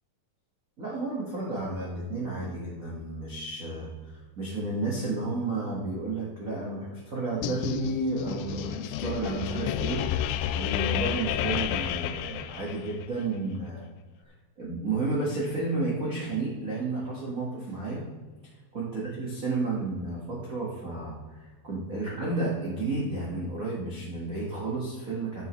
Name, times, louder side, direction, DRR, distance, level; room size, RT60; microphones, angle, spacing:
voice 1, 0.8-10.1 10.5-13.9 14.6-18.1 18.7-25.5, right 2 dB, 40° right, -5 dB, 1.2 m, -32 dB
sound 1, 7.4-13.1, left 11 dB, 85° left, 2.3 m, -31 dB
11.5 x 9.2 x 3.2 m, 1.3 s
omnidirectional pair, 4.3 m